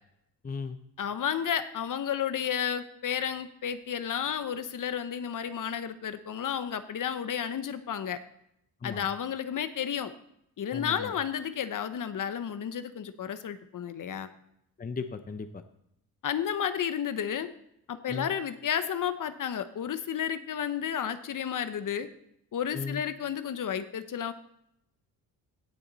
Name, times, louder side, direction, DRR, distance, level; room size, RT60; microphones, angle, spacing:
voice 1, 0.4-0.8 8.8-9.1 10.7-11.1 14.8-15.6 18.1-18.3 22.7-23.0, left 5 dB, 20° left, 10 dB, 0.7 m, -36 dB
voice 2, 1.0-8.2 8.8-10.1 10.6-14.3 16.2-17.5 17.9-22.1 22.5-24.3, left 8 dB, 50° left, 11 dB, 1.0 m, -32 dB
17.0 x 7.1 x 4.1 m, 0.76 s
cardioid pair, 95°, 40 cm